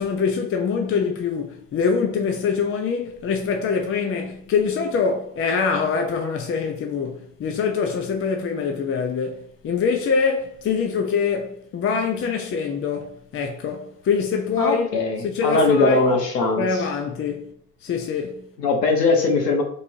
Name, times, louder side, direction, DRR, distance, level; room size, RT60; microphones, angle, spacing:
voice 1, 0.0-14.9 15.2-16.0 16.6-17.5 17.8-18.4, left 5 dB, 25° left, 0.6 m, -24 dB
voice 2, 14.6-16.9 18.6-19.6, left 3 dB, 90° left, 1.1 m, -20 dB
5.3 x 3.2 x 2.6 m
hypercardioid pair, 75°, 47 cm